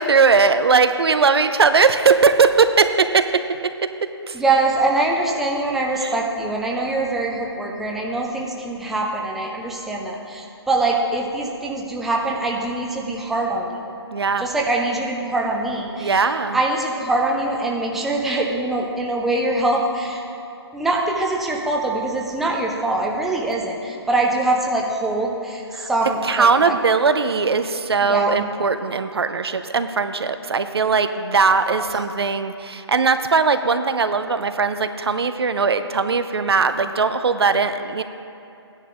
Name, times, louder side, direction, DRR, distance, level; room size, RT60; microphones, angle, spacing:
voice 1, 0.0-3.4 4.3-4.4 6.0-6.1 14.1-14.5 16.0-16.6 25.7-25.9 26.2-38.0, right 5 dB, 65° right, 10 dB, 0.6 m, -19 dB
voice 2, 4.3-14.0 14.4-16.2 16.5-20.2 20.7-26.7 28.0-28.4, right 2 dB, ahead, -1 dB, 0.4 m, -23 dB
15.0 x 10.0 x 2.5 m, 2.8 s
figure-of-eight pair, 145°, 14 cm